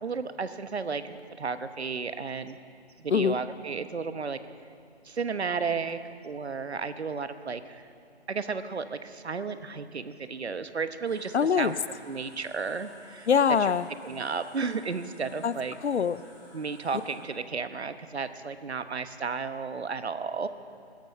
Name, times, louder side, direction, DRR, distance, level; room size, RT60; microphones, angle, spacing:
voice 1, 0.0-2.6 3.0-4.4 5.0-7.9 8.3-11.8 12.1-13.3 13.6-13.7 14.0-15.8 16.5-20.5, right 5 dB, 75° right, 11 dB, 1.0 m, -33 dB
sound 1, 11.0-17.1, left 1 dB, 15° left, 3.3 m, -54 dB
voice 2, 11.3-11.7 13.3-13.9 15.4-15.5 15.8-16.2, left 7 dB, 85° left, 17 dB, 0.6 m, -23 dB
16.5 x 13.0 x 6.5 m, 2.4 s
figure-of-eight pair, 170°, 33 cm